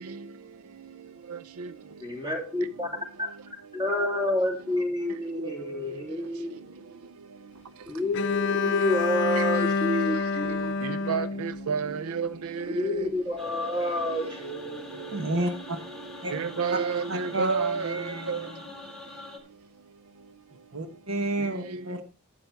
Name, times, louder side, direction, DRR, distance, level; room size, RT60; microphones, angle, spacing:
voice 1, 2.0-2.9 3.2-3.3 3.7-6.5 7.9-10.6 12.7-15.3, left 1 dB, 25° right, 3.1 m, -29 dB
Bowed string instrument, 8.1-12.2, left 4 dB, 55° left, 0.5 m, -28 dB
voice 2, 11.1-12.3 12.6-12.7 16.3-18.4, right 5 dB, 90° right, 0.5 m, -29 dB
sound 1, 13.4-19.4, left 2 dB, 5° left, 1.7 m, -44 dB
voice 3, 15.1-15.8 16.2-16.3 16.7-16.8 17.1-18.6 20.7-22.0, right 1 dB, 70° right, 1.2 m, -31 dB
11.5 x 8.5 x 3.4 m
head